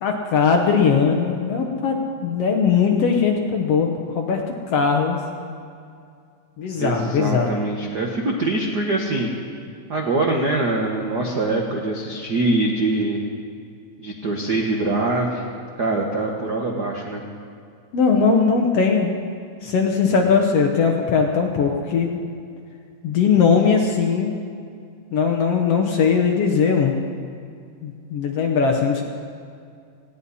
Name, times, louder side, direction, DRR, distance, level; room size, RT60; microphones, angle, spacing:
voice 1, 0.0-4.4 4.7-5.2 6.6-7.5 17.9-19.1 19.6-22.2 23.0-24.3 25.1-27.0 27.8-29.0, left 5 dB, 65° left, 2 dB, 1.6 m, -19 dB
voice 2, 6.8-9.3 9.9-13.2 14.0-15.4 15.8-17.2, right 2 dB, 80° right, 0 dB, 0.9 m, -23 dB
19.5 x 16.5 x 4.2 m, 2.3 s
omnidirectional pair, 3.9 m